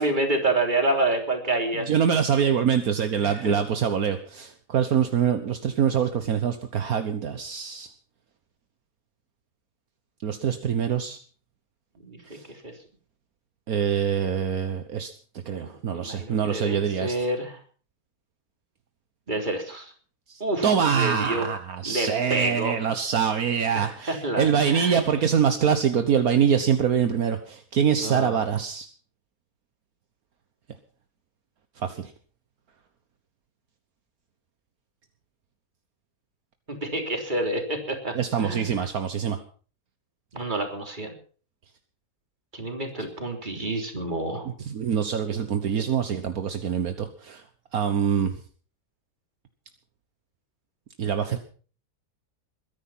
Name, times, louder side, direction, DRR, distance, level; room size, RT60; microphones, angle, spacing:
voice 1, 0.0-1.9 3.2-3.5 12.0-12.7 15.4-17.6 19.3-19.9 20.4-21.5 21.8-22.8 23.7-25.2 28.0-28.4 36.7-38.8 40.3-41.1 42.5-44.5 45.3-45.4, right 2 dB, 30° right, 4 dB, 3.6 m, -28 dB
voice 2, 1.9-7.9 10.2-11.2 12.3-12.4 13.7-15.1 15.5-17.1 20.3-28.9 31.8-32.1 38.2-39.4 44.5-47.4 47.7-48.3 51.0-51.4, right 7 dB, 70° right, 8 dB, 1.6 m, -24 dB
21.5 x 11.0 x 5.7 m, 0.41 s
omnidirectional pair, 1.6 m